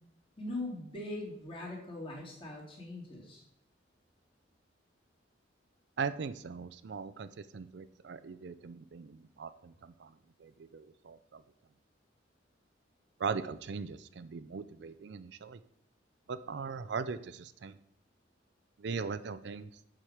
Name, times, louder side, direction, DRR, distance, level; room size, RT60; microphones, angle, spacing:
voice 1, 0.4-3.4, left 2 dB, 30° left, -2 dB, 2.3 m, -41 dB
voice 2, 6.0-10.1 10.4-11.4 13.2-15.6 16.3-17.8 18.8-19.7, right 5 dB, 60° right, 13 dB, 0.4 m, -39 dB
7.5 x 4.9 x 6.4 m, 0.69 s
head